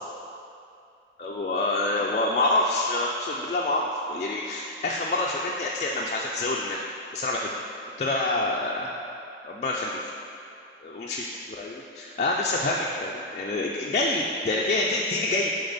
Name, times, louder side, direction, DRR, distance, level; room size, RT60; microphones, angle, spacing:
voice 1, 1.2-6.8 7.1-7.5 8.0-8.9 9.4-10.0 10.8-11.2 11.6-15.5, left 2 dB, 40° left, -3 dB, 0.3 m, -27 dB
6.6 x 3.6 x 4.1 m, 2.6 s
head